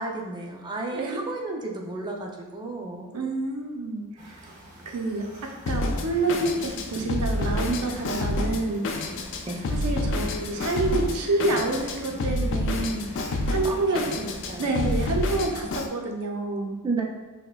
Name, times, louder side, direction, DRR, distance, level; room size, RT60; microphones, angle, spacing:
voice 1, 0.0-3.1 9.5-9.6 13.6-14.7 16.8-17.0, right 3 dB, 20° right, 0 dB, 0.4 m, -32 dB
voice 2, 3.1-4.4 4.9-5.2 5.7-9.1 9.8-14.0 14.6-16.7, right 2 dB, 90° right, 2 dB, 0.6 m, -28 dB
sound 1, 4.2-15.4, right 1 dB, 35° right, 0.9 m, -48 dB
Drum kit, 5.7-15.9, left 2 dB, 55° left, 0.3 m, -29 dB
5.9 x 2.2 x 2.2 m, 1.2 s
head